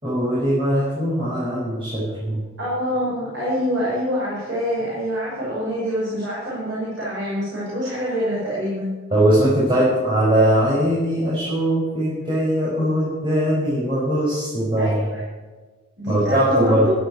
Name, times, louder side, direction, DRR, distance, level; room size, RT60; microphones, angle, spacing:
voice 1, 0.0-2.4 9.1-15.1 16.1-16.9, right 1 dB, 25° right, -8 dB, 6.2 m, -20 dB
voice 2, 2.6-8.9 14.8-15.2 16.0-16.9, equal, 60° right, -7 dB, 5.9 m, -25 dB
13.5 x 11.0 x 8.3 m, 1.3 s
head